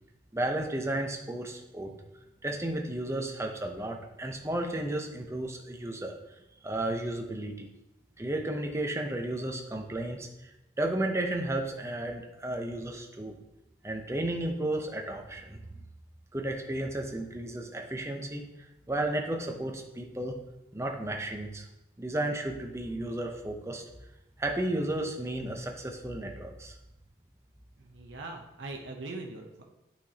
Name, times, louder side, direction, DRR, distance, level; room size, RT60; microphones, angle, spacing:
voice 1, 0.3-1.9 2.4-6.2 6.6-7.7 8.2-10.5 10.8-13.3 13.8-15.8 16.3-18.5 18.9-20.4 20.7-21.7 22.0-23.8 24.4-26.7, right 1 dB, 15° right, 2 dB, 0.6 m, -33 dB
voice 2, 27.8-29.6, right 2 dB, 80° right, 1 dB, 0.7 m, -41 dB
8.8 x 5.8 x 2.8 m, 0.95 s
head